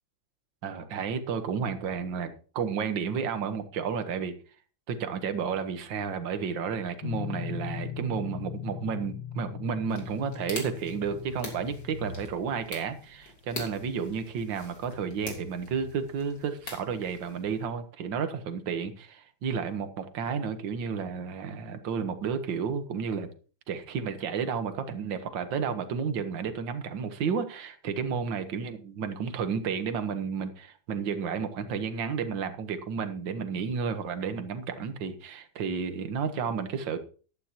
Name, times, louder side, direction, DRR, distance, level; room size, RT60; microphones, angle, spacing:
voice 1, 0.6-4.3 4.9-23.3 23.7-37.0, right 6 dB, 65° right, 9 dB, 1.9 m, -32 dB
Guitar, 7.0-12.3, left 11 dB, 80° left, 2.0 m, -39 dB
sound 1, 9.9-17.7, left 2 dB, 55° left, 3.7 m, -43 dB
15.0 x 12.0 x 2.9 m, 0.39 s
omnidirectional pair, 2.2 m